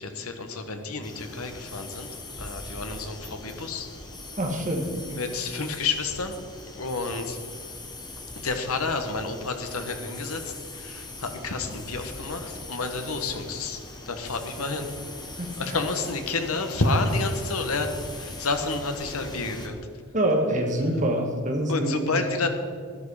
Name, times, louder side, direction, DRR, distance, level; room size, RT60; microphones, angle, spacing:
voice 1, 0.0-2.1 2.4-3.9 5.1-6.4 6.7-7.4 8.4-14.9 15.6-19.8 21.7-22.5, left 3 dB, 75° left, 6 dB, 1.4 m, -30 dB
sound 1, 1.0-19.7, left 2 dB, 20° left, 1.6 m, -41 dB
voice 2, 4.4-4.9 15.4-15.5 20.1-22.2, right 1 dB, 35° right, 2 dB, 1.9 m, -25 dB
12.5 x 11.0 x 4.9 m, 2.2 s
head